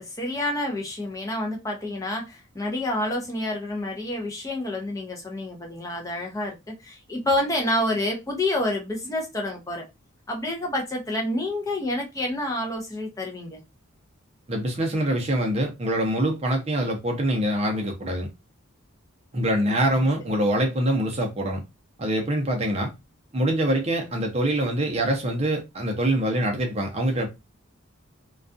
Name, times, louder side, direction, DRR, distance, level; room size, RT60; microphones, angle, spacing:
voice 1, 0.0-9.9 10.3-13.6 19.7-20.1, left 1 dB, 15° left, 0.5 m, -28 dB
voice 2, 14.5-18.3 19.3-21.6 22.0-22.9 23.3-27.3, right 1 dB, 30° right, 0.6 m, -24 dB
2.3 x 2.3 x 2.5 m
head